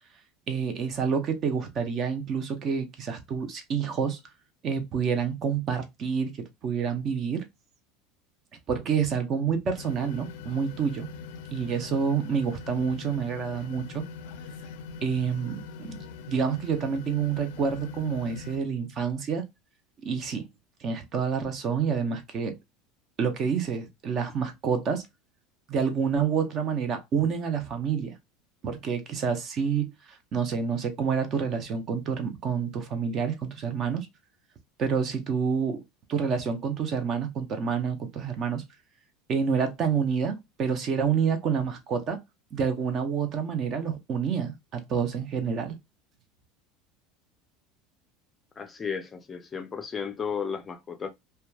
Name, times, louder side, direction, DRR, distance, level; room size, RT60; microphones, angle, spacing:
voice 1, 0.5-4.2 4.6-7.5 8.7-11.1 11.5-14.0 15.0-16.0 16.3-19.4 20.0-20.5 20.8-22.6 23.2-25.0 25.7-28.2 28.6-29.9 30.3-34.1 34.8-35.8 36.1-38.6 39.3-42.2 42.5-45.8, right 6 dB, 40° right, 0.6 m, -28 dB
sound 1, 9.8-18.6, left 5 dB, 80° left, 0.4 m, -42 dB
voice 2, 48.6-51.1, left 6 dB, 20° left, 0.4 m, -34 dB
2.8 x 2.2 x 2.2 m
supercardioid pair, 135°, 0 cm